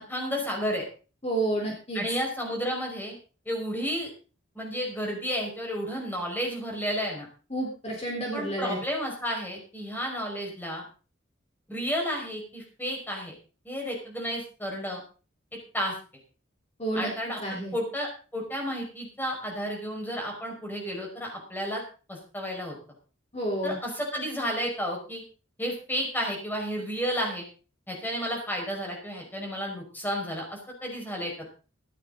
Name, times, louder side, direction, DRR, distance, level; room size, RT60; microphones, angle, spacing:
voice 1, 0.1-0.9 1.9-3.2 3.5-4.1 4.6-7.3 8.3-10.8 11.7-13.3 13.7-15.0 15.7-16.0 16.9-17.4 17.7-21.8 22.1-22.8 23.6-25.2 25.6-27.5 27.9-31.5, equal, 10° left, 0 dB, 5.4 m, -32 dB
voice 2, 1.2-2.0 7.5-8.8 16.8-17.1 17.4-17.7 23.3-23.8, right 1 dB, 35° left, -1 dB, 3.9 m, -30 dB
15.0 x 13.0 x 3.9 m, 0.36 s
head